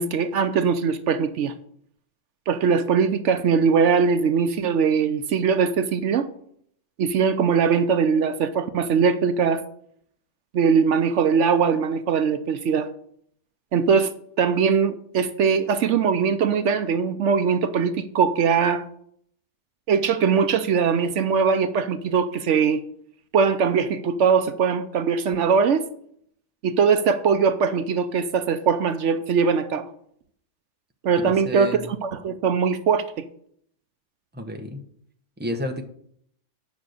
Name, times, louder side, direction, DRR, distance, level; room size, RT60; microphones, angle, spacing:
voice 1, 0.0-1.5 2.5-6.3 7.0-9.6 10.5-12.9 13.7-18.9 19.9-22.8 23.3-25.9 26.6-29.8 31.0-33.0, right 6 dB, 70° right, 11 dB, 1.0 m, -21 dB
voice 2, 31.2-31.9 34.3-34.9 35.4-35.8, equal, 10° right, 4 dB, 1.0 m, -30 dB
9.4 x 6.1 x 6.4 m, 0.66 s
omnidirectional pair, 1.3 m